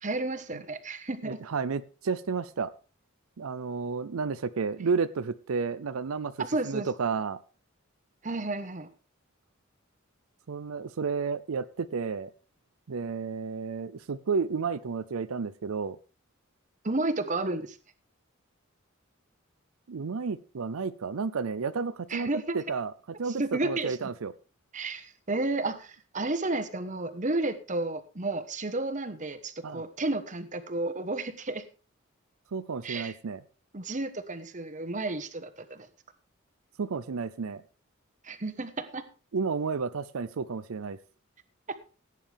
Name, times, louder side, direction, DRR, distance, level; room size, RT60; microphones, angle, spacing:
voice 1, 0.0-1.4 6.4-6.9 8.2-8.9 16.8-17.8 22.1-22.6 23.4-24.0 24.7-31.6 32.8-33.1 33.7-35.9 38.2-39.0, right 2 dB, 35° right, 10 dB, 1.2 m, -32 dB
voice 2, 1.2-2.7 3.4-6.3 6.6-7.4 10.5-12.3 12.9-16.0 19.9-22.3 22.5-22.9 23.2-24.3 29.6-29.8 32.5-33.4 36.8-37.6 39.3-41.0, right 5 dB, 90° right, 14 dB, 0.5 m, -31 dB
17.0 x 9.2 x 3.5 m, 0.34 s
head